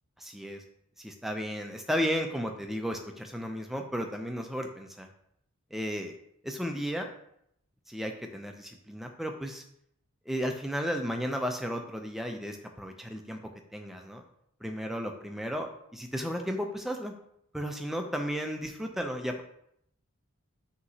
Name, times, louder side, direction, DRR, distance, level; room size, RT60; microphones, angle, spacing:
voice 1, 0.2-0.6 1.0-5.1 5.7-6.1 6.4-7.1 7.9-9.6 10.3-13.4 13.7-14.2 14.6-17.1 17.5-19.4, equal, ahead, 4 dB, 0.3 m, -34 dB
5.6 x 2.9 x 2.7 m, 0.73 s
head